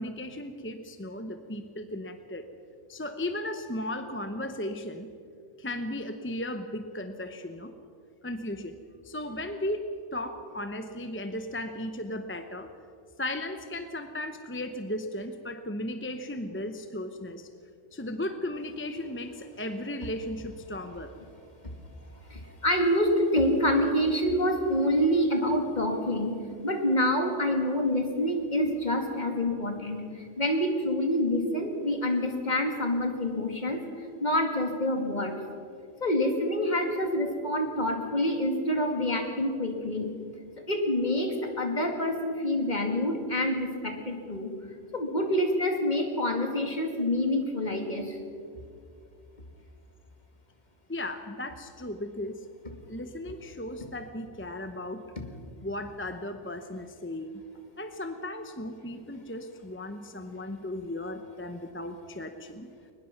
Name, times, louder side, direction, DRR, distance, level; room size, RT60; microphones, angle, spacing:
voice 1, 0.0-2.5 2.9-5.1 5.6-7.7 8.2-8.8 9.0-12.7 13.2-17.5 17.9-21.2 50.9-52.5 52.9-55.0 55.6-57.4 57.8-62.7, left 1 dB, 10° left, 8 dB, 0.7 m, -36 dB
voice 2, 22.3-26.3 26.6-35.4 36.0-40.1 40.7-44.5 44.9-48.2 55.2-55.3, left 1 dB, 40° left, 3 dB, 2.4 m, -27 dB
22.0 x 20.5 x 5.9 m, 2.4 s
omnidirectional pair, 1.2 m